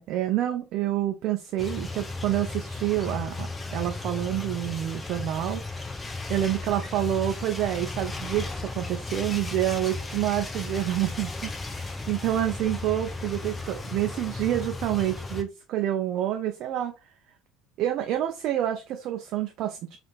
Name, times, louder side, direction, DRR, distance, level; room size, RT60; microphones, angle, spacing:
voice 1, 0.0-5.9 6.3-16.9 17.8-20.0, right 12 dB, 55° right, 0.4 m, -28 dB
sound 1, 1.6-15.4, left 3 dB, 15° left, 0.6 m, -35 dB
3.6 x 2.4 x 2.4 m
figure-of-eight pair, 65°, 0 cm